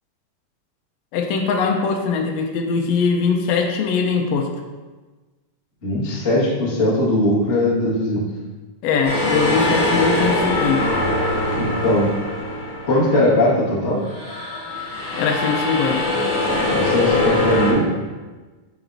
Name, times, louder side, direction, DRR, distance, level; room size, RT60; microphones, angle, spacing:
voice 1, 1.1-4.5 8.8-10.8 15.2-16.0, left 5 dB, 85° left, 2 dB, 1.5 m, -21 dB
voice 2, 5.8-8.2 11.5-12.1 12.8-14.0 16.7-17.9, left 1 dB, 35° left, -8 dB, 1.1 m, -19 dB
sound 1, 9.0-13.6 14.0-17.7, left 2 dB, 65° left, 3.2 m, -22 dB
9.0 x 4.1 x 2.6 m, 1.3 s
omnidirectional pair, 3.7 m